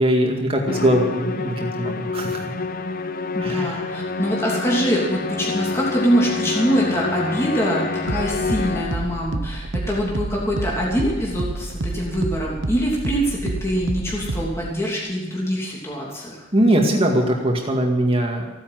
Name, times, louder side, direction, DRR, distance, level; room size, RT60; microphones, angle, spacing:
voice 1, 0.0-2.4 3.4-3.8 16.5-18.5, right 1 dB, 30° right, 1 dB, 2.2 m, -21 dB
Musical instrument, 0.7-9.2, left 4 dB, 50° left, 0.7 m, -28 dB
voice 2, 3.3-16.4, equal, 15° left, -4 dB, 3.0 m, -24 dB
sound 1, 6.0-14.7, right 2 dB, 70° right, 1.0 m, -30 dB
15.5 x 10.0 x 7.8 m, 1.2 s
head